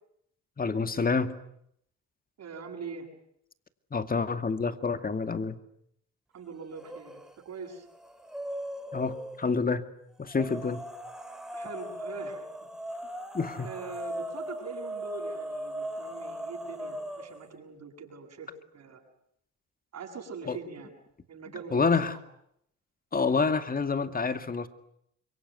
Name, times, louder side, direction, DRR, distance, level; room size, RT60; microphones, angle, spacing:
voice 1, 0.6-1.4 3.9-5.6 8.9-9.8 10.2-10.8 13.3-13.7 20.5-20.6 21.7-22.2 23.1-24.7, left 4 dB, 30° left, 11 dB, 2.3 m, -28 dB
voice 2, 2.4-3.1 6.3-7.9 11.5-12.4 13.0-13.1 13.6-19.0 19.9-20.9 21.3-22.2, right 5 dB, 60° right, 2 dB, 7.8 m, -43 dB
sound 1, 6.7-7.4 7.7-9.5 10.3-17.5, equal, ahead, 3.3 m, -39 dB
26.5 x 23.0 x 9.5 m, 0.73 s
cardioid pair, 90°, 30 cm